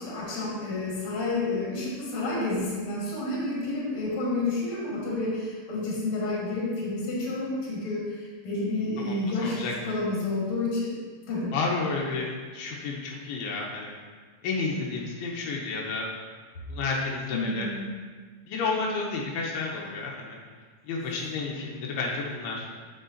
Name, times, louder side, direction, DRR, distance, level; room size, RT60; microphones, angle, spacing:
voice 1, 0.0-10.9 11.3-11.5 17.3-18.0, left 2 dB, 45° left, -6 dB, 2.2 m, -30 dB
voice 2, 9.4-9.7 11.5-14.0 14.4-16.1 16.7-17.7 18.5-20.4 20.9-22.8, left 4 dB, 85° left, -2 dB, 2.8 m, -31 dB
7.4 x 6.0 x 2.8 m, 1.5 s
omnidirectional pair, 4.5 m